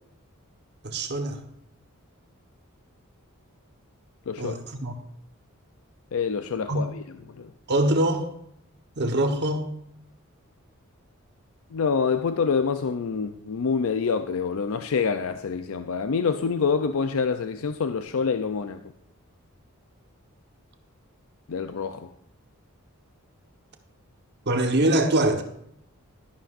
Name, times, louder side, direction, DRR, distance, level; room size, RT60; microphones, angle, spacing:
voice 1, 0.8-1.4 4.4-4.9 6.7-6.8 7.7-8.3 9.0-9.7 24.5-25.4, right 1 dB, 50° right, 5 dB, 1.1 m, -23 dB
voice 2, 4.3-4.6 6.1-7.5 11.7-18.8 21.5-22.1, left 5 dB, 65° left, 9 dB, 0.4 m, -26 dB
11.5 x 11.0 x 2.5 m, 0.72 s
head